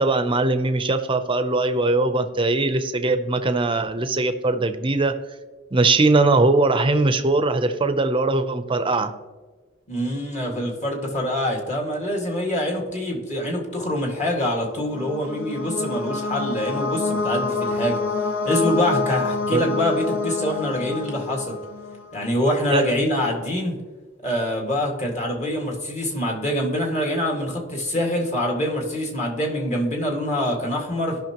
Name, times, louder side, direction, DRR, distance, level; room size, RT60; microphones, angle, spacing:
voice 1, 0.0-5.2 5.7-9.1 19.5-19.7 22.7-22.9, right 2 dB, 25° right, 9 dB, 0.6 m, -20 dB
voice 2, 9.9-18.0 18.5-21.6 22.1-23.7 24.2-31.2, equal, 35° left, -1 dB, 1.9 m, -25 dB
sound 1, 14.5-22.3, left 4 dB, 80° left, 1.0 m, -27 dB
16.0 x 5.8 x 3.0 m, 1.3 s
head